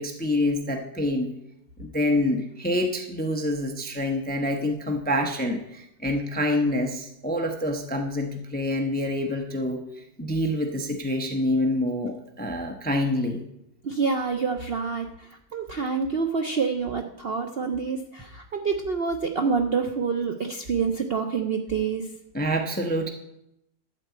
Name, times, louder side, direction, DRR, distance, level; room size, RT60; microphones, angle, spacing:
voice 1, 0.0-1.3 1.8-9.8 10.2-13.4 22.3-23.1, left 1 dB, 10° left, 4 dB, 0.7 m, -26 dB
voice 2, 13.8-15.1 15.5-22.0, right 5 dB, 75° right, 4 dB, 0.5 m, -27 dB
12.0 x 4.6 x 8.0 m, 0.82 s
omnidirectional pair, 2.0 m